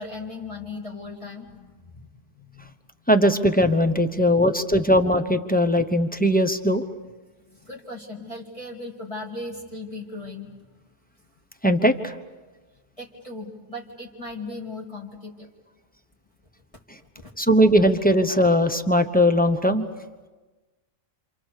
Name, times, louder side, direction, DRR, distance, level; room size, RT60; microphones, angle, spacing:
voice 1, 0.0-2.1 2.3-2.8 4.1-4.5 7.4-10.6 13.0-15.5 17.0-17.3, left 2 dB, 25° left, -3 dB, 2.4 m, -38 dB
voice 2, 3.1-6.8 11.6-12.1 17.4-19.8, equal, 5° left, 8 dB, 0.9 m, -19 dB
28.0 x 27.5 x 6.7 m, 1.3 s
omnidirectional pair, 1.4 m